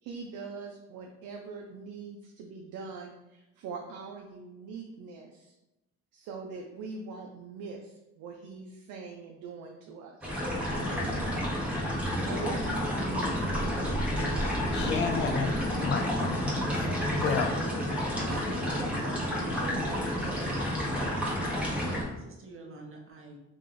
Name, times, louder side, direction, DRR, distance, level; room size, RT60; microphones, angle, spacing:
voice 1, 0.0-5.6 6.1-10.3 12.2-13.7 18.2-18.9, right 4 dB, 90° right, 1 dB, 0.5 m, -42 dB
sound 1, 10.2-22.0, equal, 5° right, 1.2 m, -30 dB
voice 2, 14.7-16.4 16.7-17.6, left 6 dB, 40° left, 5 dB, 0.4 m, -32 dB
voice 3, 19.1-20.9 21.7-23.4, right 3 dB, 45° right, 1 dB, 0.9 m, -45 dB
3.1 x 3.0 x 3.8 m, 0.96 s
cardioid pair, 90°, 30 cm